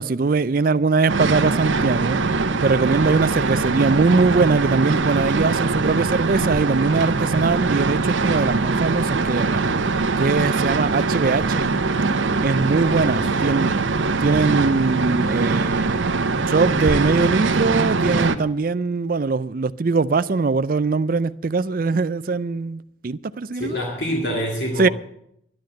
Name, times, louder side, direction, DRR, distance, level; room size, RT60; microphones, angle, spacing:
voice 1, 0.0-2.2 2.6-9.6 10.2-11.7 12.4-13.7 14.2-16.0 16.5-23.8 24.8-24.9, right 4 dB, 45° right, 0.4 m, -21 dB
sound 1, 1.1-18.4, right 3 dB, 80° right, 0.8 m, -22 dB
voice 2, 13.1-13.6 23.5-24.9, equal, 60° left, 2.5 m, -27 dB
11.5 x 10.5 x 7.7 m
head